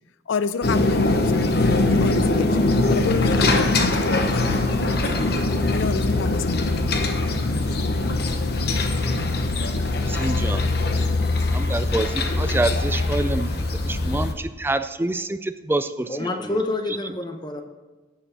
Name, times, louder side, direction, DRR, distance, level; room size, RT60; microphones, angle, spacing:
voice 1, 0.3-2.5 2.9-4.5 5.7-6.7, left 5 dB, 85° left, 14 dB, 0.4 m, -28 dB
sound 1, 0.6-14.3, left 2 dB, 55° left, 1.0 m, -22 dB
voice 2, 10.1-10.6 11.5-13.6 13.8-16.3, right 2 dB, 10° right, 11 dB, 0.3 m, -26 dB
voice 3, 16.1-17.6, left 2 dB, 20° left, 5 dB, 0.9 m, -28 dB
10.0 x 5.7 x 7.4 m, 1.2 s
head